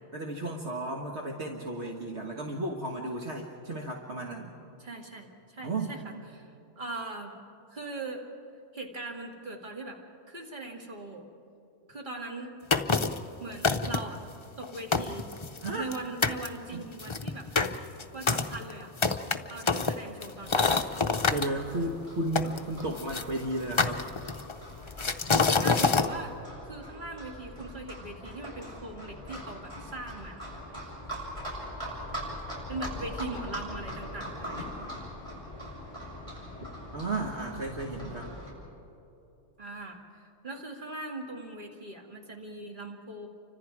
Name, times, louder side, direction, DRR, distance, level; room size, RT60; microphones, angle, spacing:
voice 1, 0.1-4.5 5.6-6.0 15.6-15.9 16.7-16.8 19.7-19.9 21.3-24.0 36.9-38.3, right 2 dB, 60° right, 0 dB, 1.8 m, -34 dB
voice 2, 4.8-7.3 7.7-8.2 8.7-10.0 10.3-11.3 11.9-12.5 13.4-14.2 14.6-15.3 15.7-17.5 18.1-18.9 19.5-20.9 25.5-26.3 26.7-30.5 32.7-34.7 39.6-43.3, right 2 dB, 40° right, 1 dB, 2.5 m, -40 dB
sound 1, 12.7-13.2 13.6-14.2 14.6-14.7 14.9-16.0 16.2-16.5 17.0-21.5 22.3-23.2 23.8-24.5 25.0-26.1, left 4 dB, 30° left, 0.6 m, -26 dB
Livestock farm animals working animals, 20.4-38.5, equal, 25° right, 6.9 m, -42 dB
29.5 x 25.5 x 4.8 m, 2.8 s
omnidirectional pair, 1.3 m